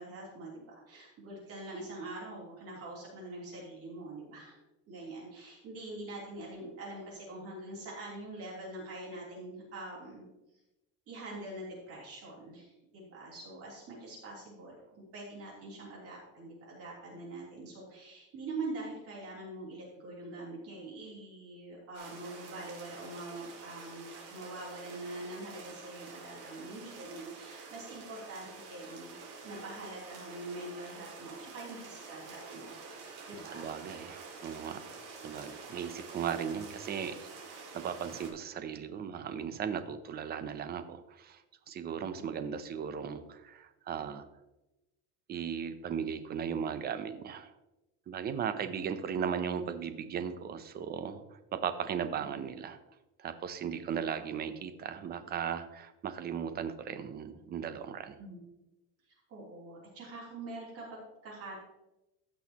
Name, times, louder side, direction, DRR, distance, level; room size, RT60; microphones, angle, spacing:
voice 1, 0.0-4.6 4.9-10.3 11.1-29.1 29.4-33.7 52.2-52.4 53.9-54.4 58.2-58.4 59.3-61.6, right 2 dB, 45° right, -4 dB, 3.4 m, -44 dB
sound 1, 21.9-38.3, right 4 dB, 70° right, 2.6 m, -48 dB
voice 2, 33.5-34.8 35.2-37.3 37.7-44.3 45.3-47.5 48.1-52.8 53.2-58.2, right 7 dB, 30° right, 10 dB, 0.7 m, -37 dB
15.5 x 6.3 x 3.0 m, 0.96 s
cardioid pair, 160°, 32 cm